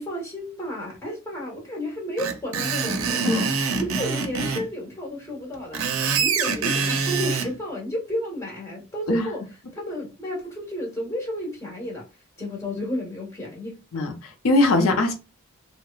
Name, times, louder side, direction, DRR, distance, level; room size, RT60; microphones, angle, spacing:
voice 1, 0.0-3.5 3.8-5.8 6.2-9.4 9.7-12.0 12.4-14.0, left 1 dB, 15° left, 1.0 m, -32 dB
Screech, 2.2-4.6 5.5-7.5, right 5 dB, 75° right, 0.5 m, -25 dB
voice 2, 13.9-15.1, left 2 dB, 80° left, 0.5 m, -21 dB
2.9 x 2.1 x 2.3 m
head